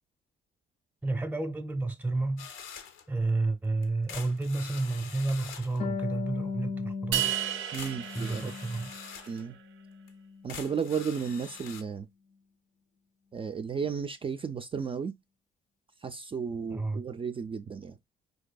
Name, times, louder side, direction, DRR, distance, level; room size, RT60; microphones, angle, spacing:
voice 1, 1.0-2.5 3.1-7.3 8.1-8.9 16.7-17.0, right 2 dB, 10° right, 0.7 m, -31 dB
sound 1, 2.4-3.1 3.8-5.8 7.3-7.4 7.7-9.4 10.1-10.2 10.5-11.8, left 7 dB, 85° left, 0.7 m, -45 dB
Harp, 5.8-9.2 9.5-10.6, left 5 dB, 40° left, 0.5 m, -38 dB
sound 2, 7.1-9.4, right 10 dB, 85° right, 0.5 m, -33 dB
voice 2, 7.7-8.5 9.3-9.6 10.4-12.1 13.3-15.1 16.0-18.0, right 6 dB, 25° right, 0.3 m, -34 dB
4.5 x 2.5 x 2.2 m
cardioid pair, 90°, 20 cm